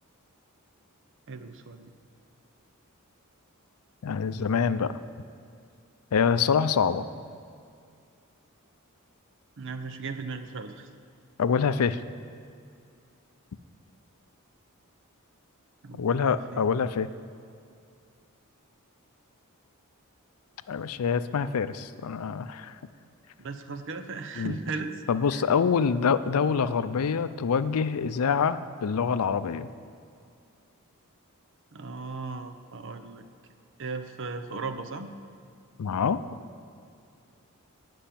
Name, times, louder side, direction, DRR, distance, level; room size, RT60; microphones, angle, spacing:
voice 1, 1.3-1.9 9.6-10.9 15.8-16.7 23.4-25.0 25.3-25.4 31.7-33.2 33.8-35.1, right 4 dB, 60° right, 9 dB, 0.7 m, -37 dB
voice 2, 4.0-5.0 6.1-7.1 11.4-12.0 16.0-17.1 20.7-22.7 24.4-24.5 25.1-29.7 35.8-36.2, left 6 dB, 85° left, 13 dB, 0.4 m, -25 dB
11.5 x 5.4 x 8.6 m, 2.3 s
head